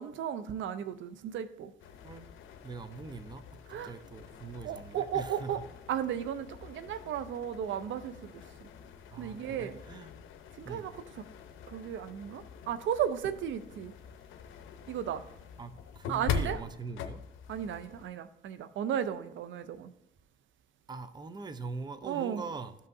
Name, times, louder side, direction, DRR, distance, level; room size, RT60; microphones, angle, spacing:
voice 1, 0.0-1.7 3.7-3.9 4.6-5.6 5.9-8.7 9.2-9.8 10.6-11.2 11.7-13.9 14.9-15.2 16.1-16.6 17.5-19.9 22.0-22.4, right 9 dB, 75° right, 0.5 m, -35 dB
sound 1, 1.8-18.0, left 6 dB, 80° left, 0.7 m, -43 dB
voice 2, 2.6-5.5 9.1-10.1 10.6-10.9 15.6-17.2 20.9-22.7, right 4 dB, 20° right, 0.5 m, -42 dB
13.0 x 5.5 x 2.6 m
cardioid pair, 90°, 20 cm